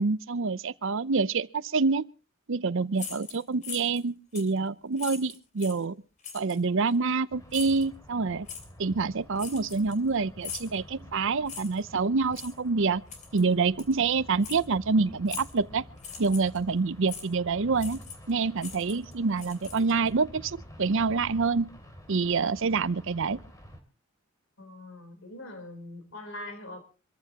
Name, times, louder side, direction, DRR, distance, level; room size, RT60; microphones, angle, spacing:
voice 1, 0.0-2.0 2.5-6.0 6.3-8.5 8.8-13.0 13.3-15.8 16.2-18.0 18.3-21.7 22.1-23.4, right 4 dB, 65° right, 0.6 m, -27 dB
sound 1, 2.9-4.0 4.3-4.6 5.0-5.8 6.2-6.6 7.5-7.8 8.5-8.6 9.4-10.1 10.4-10.7 11.5-11.8 12.3-12.5 13.1-13.4 13.8-13.9 14.4-14.6 15.3-15.6 16.0-16.6 17.1-17.3 17.8-18.3 18.6-20.1, left 7 dB, 35° left, 3.1 m, -41 dB
sound 2, 7.3-23.8, equal, 15° left, 2.9 m, -49 dB
voice 2, 24.6-26.8, left 1 dB, 65° left, 3.7 m, -42 dB
26.0 x 14.5 x 2.9 m
head